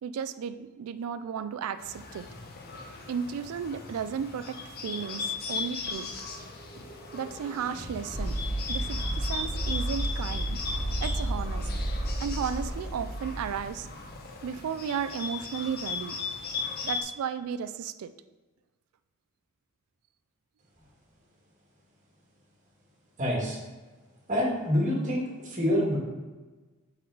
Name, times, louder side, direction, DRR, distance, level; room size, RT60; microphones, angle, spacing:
voice 1, 0.0-2.3 3.1-6.1 7.1-8.4 8.7-10.6 11.0-11.7 12.2-13.9 14.4-16.2 16.8-18.1, right 7 dB, 90° right, 11 dB, 0.3 m, -34 dB
Bird, 1.8-17.0, left 4 dB, 45° left, 0.7 m, -38 dB
sound 1, 5.9-14.0, right 1 dB, 30° left, 1.9 m, -33 dB
voice 2, 23.2-23.6 24.3-26.0, equal, 35° right, -3 dB, 1.8 m, -26 dB
5.8 x 4.0 x 4.6 m, 1.3 s
head